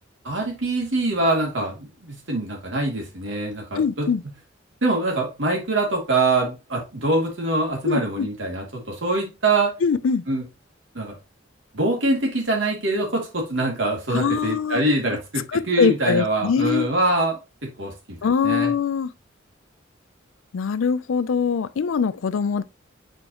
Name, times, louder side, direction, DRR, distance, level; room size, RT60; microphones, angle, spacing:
voice 1, 0.2-4.1 4.8-9.7 10.3-10.4 10.9-11.1 11.7-18.2 18.4-18.7, right 2 dB, 70° right, 2.6 m, -24 dB
voice 2, 3.8-4.2 7.8-8.3 9.8-10.2 14.1-14.8 15.5-16.9 18.2-19.1 20.5-22.6, left 6 dB, 85° left, 0.4 m, -22 dB
7.8 x 4.5 x 2.9 m
head